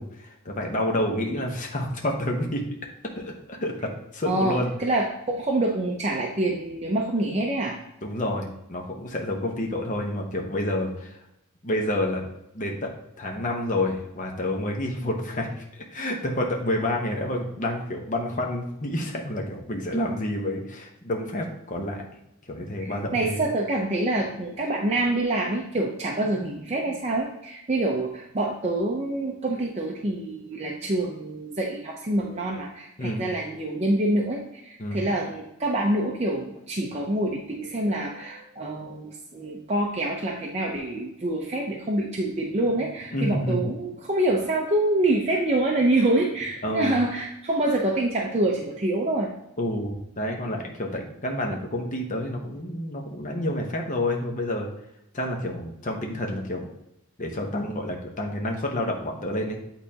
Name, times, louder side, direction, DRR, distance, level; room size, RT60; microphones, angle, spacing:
voice 1, 0.0-2.6 3.2-4.7 8.0-11.2 11.6-12.2 12.5-22.0 22.5-23.4 33.0-33.2 34.8-35.0 43.1-43.7 46.6-46.9 49.6-54.7 55.1-56.6 57.2-59.6, left 1 dB, 35° left, 1 dB, 1.0 m, -29 dB
voice 2, 4.2-7.7 22.8-49.3, right 1 dB, 30° right, -2 dB, 0.6 m, -26 dB
8.6 x 3.9 x 2.8 m, 0.83 s
head